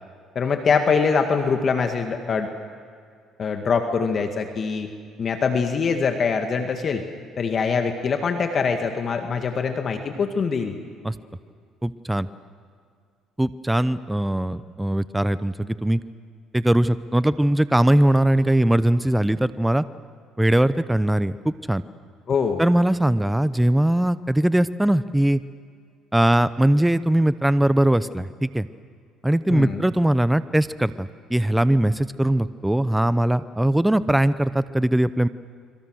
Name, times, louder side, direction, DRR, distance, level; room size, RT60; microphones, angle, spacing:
voice 1, 0.4-2.5 3.4-4.9 5.2-7.0 7.4-10.8 22.3-22.6 29.5-29.8, left 5 dB, 45° left, 5 dB, 2.0 m, -23 dB
voice 2, 11.8-12.3 13.4-16.0 16.5-19.8 20.4-21.8 22.6-25.4 26.1-28.7 29.2-35.3, right 1 dB, 5° right, 15 dB, 0.8 m, -20 dB
26.0 x 26.0 x 6.5 m, 2.2 s
supercardioid pair, 70°, 0 cm